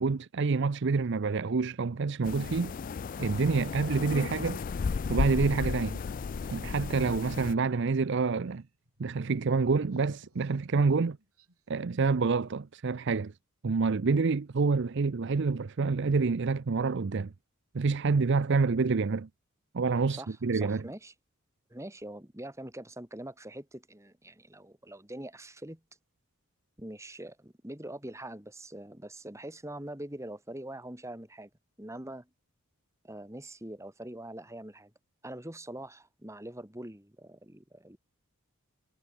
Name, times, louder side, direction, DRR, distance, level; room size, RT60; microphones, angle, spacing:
voice 1, 0.0-2.7 3.2-4.6 5.1-6.0 6.5-8.6 9.0-11.2 11.7-13.3 13.6-17.3 17.7-19.3 19.7-20.8, right 4 dB, 55° right, 0.5 m, -27 dB
sound 1, 2.2-7.5, left 5 dB, 40° left, 0.3 m, -34 dB
sound 2, 5.5-11.6, right 2 dB, 85° right, 5.4 m, -57 dB
voice 2, 20.1-21.1 21.7-25.8 26.8-31.5 31.8-32.3 33.0-34.9 35.2-38.0, right 1 dB, 15° right, 2.3 m, -43 dB
head